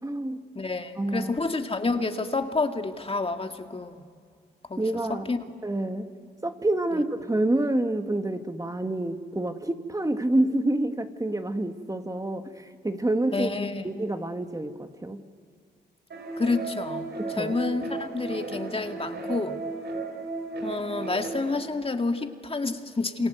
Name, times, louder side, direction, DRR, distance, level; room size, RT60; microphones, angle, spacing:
voice 1, 0.0-0.4 1.0-1.3 4.8-5.3 5.6-6.1 6.4-13.5 13.8-15.2 17.2-17.6, right 1 dB, 20° right, 6 dB, 1.9 m, -28 dB
voice 2, 0.6-4.0 4.7-5.4 6.9-7.0 13.3-13.9 16.4-19.6 20.6-23.3, left 3 dB, 30° left, 5 dB, 2.1 m, -29 dB
sound 1, 16.1-21.5, right 3 dB, 65° right, 5.4 m, -35 dB
27.5 x 27.0 x 8.0 m, 2.1 s
supercardioid pair, 55°, 19 cm